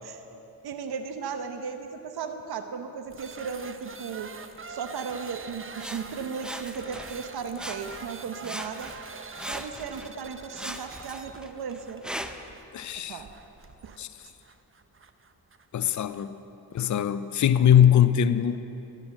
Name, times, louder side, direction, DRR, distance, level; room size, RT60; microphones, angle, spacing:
voice 1, 0.0-4.3 4.7-8.9 9.4-12.0 13.1-13.3 13.8-14.0, right 6 dB, 60° right, 7 dB, 1.0 m, -36 dB
sound 1, 3.1-16.3, right 4 dB, 30° right, 0.9 m, -45 dB
Sawing, 5.8-7.2 7.5-8.2 8.4-10.1 10.5-12.5 13.2-13.3, equal, ahead, 0.9 m, -39 dB
voice 2, 12.7-13.2 14.0-14.1 15.7-16.3 16.7-18.6, left 9 dB, 45° left, 12 dB, 0.6 m, -21 dB
13.0 x 9.0 x 7.6 m, 2.9 s
supercardioid pair, 50°, 42 cm